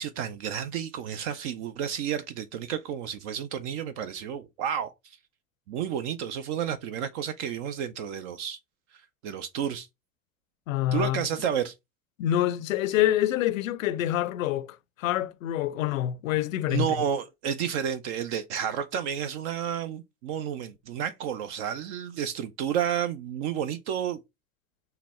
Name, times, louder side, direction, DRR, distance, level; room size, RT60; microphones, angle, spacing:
voice 1, 0.0-5.2 5.7-8.6 9.2-9.9 10.9-11.7 16.7-24.2, right 8 dB, 60° right, 0.6 m, -31 dB
voice 2, 10.7-11.2 12.2-16.9, left 13 dB, 80° left, 0.6 m, -26 dB
3.9 x 2.2 x 4.1 m
hypercardioid pair, 90°, 39 cm